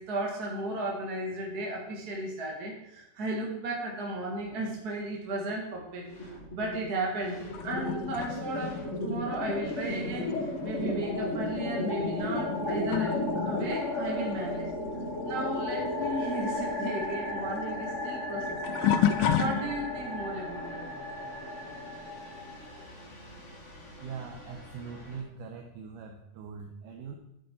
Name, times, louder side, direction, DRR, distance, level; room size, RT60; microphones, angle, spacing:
voice 1, 0.0-8.8 9.0-14.7 15.2-20.9, right 2 dB, 40° right, -1 dB, 1.6 m, -35 dB
sound 1, 6.1-6.9 7.2-25.2, left 1 dB, 30° left, 1.6 m, -35 dB
sound 2, 7.5-15.5 15.8-20.1 20.7-21.1 23.3-23.4 24.3-24.4, left 9 dB, 85° left, 2.4 m, -33 dB
voice 2, 24.0-27.2, right 6 dB, 75° right, 2 dB, 2.3 m, -42 dB
12.0 x 8.0 x 4.5 m, 0.84 s
omnidirectional pair, 3.9 m